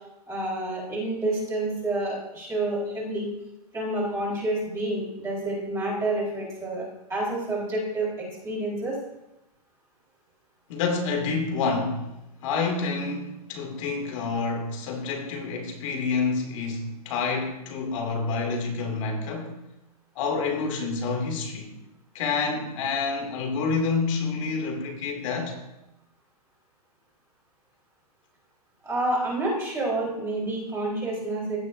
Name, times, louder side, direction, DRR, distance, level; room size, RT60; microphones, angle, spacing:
voice 1, 0.3-3.3 3.7-9.0 28.8-31.6, right 2 dB, 15° right, -6 dB, 4.0 m, -29 dB
voice 2, 10.7-12.1 12.4-19.6 20.2-21.7 22.1-25.6, left 4 dB, 55° left, 2 dB, 2.4 m, -28 dB
16.0 x 7.3 x 2.6 m, 0.92 s
hypercardioid pair, 135°, 20 cm